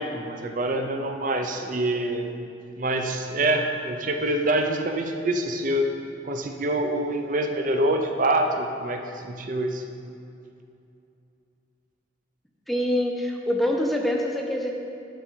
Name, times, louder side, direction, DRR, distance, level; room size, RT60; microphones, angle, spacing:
voice 1, 0.0-2.3 2.8-9.8, right 1 dB, 45° right, 4 dB, 0.6 m, -26 dB
voice 2, 12.7-14.7, left 1 dB, ahead, 0 dB, 0.6 m, -25 dB
11.0 x 5.3 x 4.5 m, 2.6 s
head